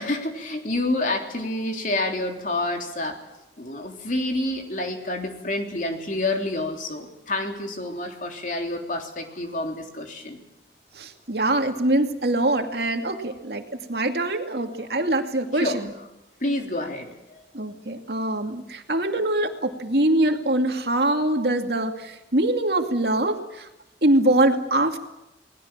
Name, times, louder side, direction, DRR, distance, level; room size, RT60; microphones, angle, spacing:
voice 1, 0.0-3.2 3.6-10.4 15.5-15.8 16.4-17.4, left 2 dB, 45° left, 3 dB, 3.5 m, -28 dB
voice 2, 11.0-13.6 13.9-15.9 17.5-23.7 24.0-25.0, right 1 dB, 65° right, 4 dB, 2.5 m, -23 dB
29.5 x 20.0 x 7.5 m, 0.89 s
head